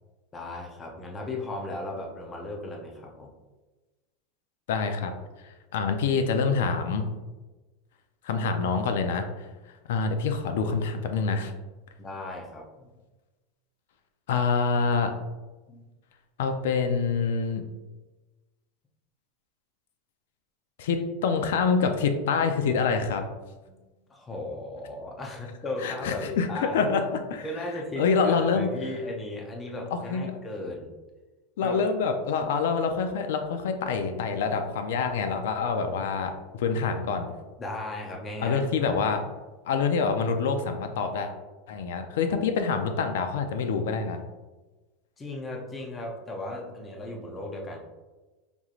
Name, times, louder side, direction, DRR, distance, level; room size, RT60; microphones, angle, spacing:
voice 1, 0.3-3.3 12.0-12.9 15.7-15.9 23.7-23.8 24.1-26.8 27.4-30.9 31.6-31.9 37.6-39.2 42.3-42.4 45.2-47.8, left 2 dB, 15° left, 0 dB, 0.5 m, -36 dB
voice 2, 4.7-5.1 5.7-7.0 8.2-9.3 9.9-11.5 14.3-15.1 16.4-17.6 20.8-23.2 25.8-27.0 27.3-27.5 28.0-28.7 29.9-30.3 31.6-37.4 38.4-39.2 39.7-41.3 41.7-44.2, left 5 dB, 80° left, 7 dB, 0.4 m, -26 dB
5.2 x 3.0 x 2.4 m, 1.2 s
supercardioid pair, 165°, 0 cm